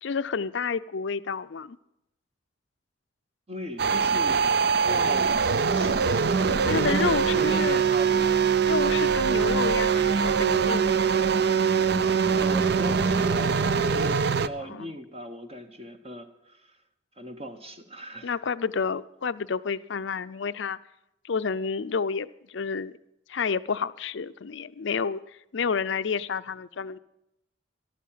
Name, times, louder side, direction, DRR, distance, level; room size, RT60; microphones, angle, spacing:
voice 1, 0.0-1.8 6.7-7.8 8.7-10.9 14.6-15.0 18.2-20.8 21.2-22.9 23.3-25.2 25.5-27.0, left 5 dB, 65° left, 14 dB, 0.5 m, -29 dB
voice 2, 3.5-4.5 4.8-7.0 7.3-8.3 12.3-16.8 17.2-18.3, right 1 dB, 30° right, 6 dB, 0.9 m, -38 dB
sound 1, 3.8-14.5, right 6 dB, 55° right, 0.5 m, -23 dB
13.5 x 12.0 x 5.7 m, 0.86 s
head